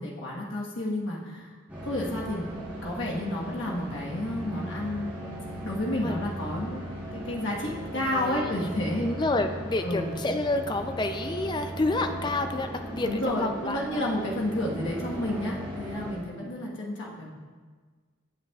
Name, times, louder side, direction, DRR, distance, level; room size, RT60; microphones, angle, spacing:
voice 1, 0.0-1.5 1.8-2.5 2.8-5.1 5.6-6.8 7.1-9.1 9.8-10.1 13.0-17.3, left 1 dB, 60° left, -3 dB, 1.3 m, -31 dB
sound 1, 1.7-16.2, right 1 dB, 5° right, 2.2 m, -38 dB
voice 2, 8.1-8.7 9.0-14.0 16.4-16.5, left 2 dB, 20° left, 7 dB, 0.4 m, -29 dB
16.5 x 5.7 x 2.4 m, 1.5 s
head